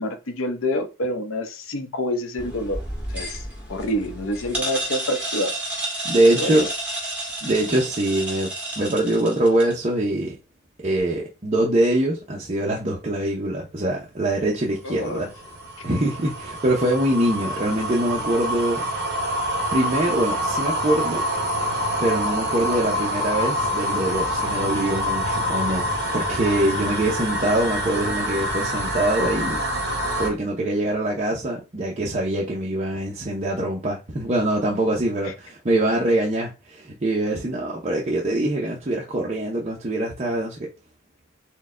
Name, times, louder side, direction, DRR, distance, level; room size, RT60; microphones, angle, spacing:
voice 1, 0.0-2.8 3.1-3.4 3.7-5.6 6.3-6.7 7.4-7.5 14.8-15.3 35.2-35.3, left 1 dB, 80° left, 0.7 m, -27 dB
sound 1, 2.4-9.8, right 1 dB, 10° right, 1.6 m, -31 dB
voice 2, 6.0-6.7 7.4-10.4 10.8-15.3 15.8-18.8 19.2-19.3 19.7-21.3 22.0-25.9 26.1-29.6 30.2-40.7, right 1 dB, 30° right, 0.6 m, -23 dB
sound 2, 14.7-30.3, equal, 50° right, 1.0 m, -26 dB
4.4 x 2.2 x 3.7 m
head